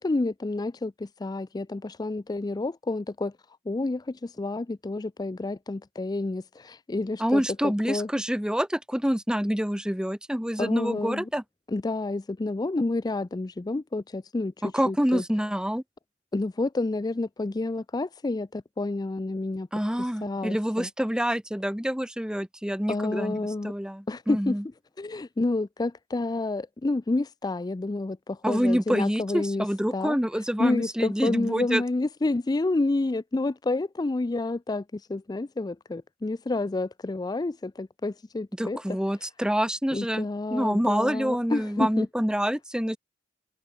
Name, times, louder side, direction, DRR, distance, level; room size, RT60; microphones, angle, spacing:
voice 1, 0.0-3.3 3.7-8.1 10.6-11.3 11.7-14.5 14.9-15.2 16.3-19.7 20.0-20.9 22.9-23.7 24.1-24.6 25.0-30.2 30.6-39.0 39.9-42.1, left 2 dB, 20° left, 0.4 m, -29 dB
voice 2, 7.2-11.4 14.6-15.8 19.7-24.6 28.4-31.8 38.6-40.2 40.5-43.0, equal, 5° right, 1.2 m, -27 dB
head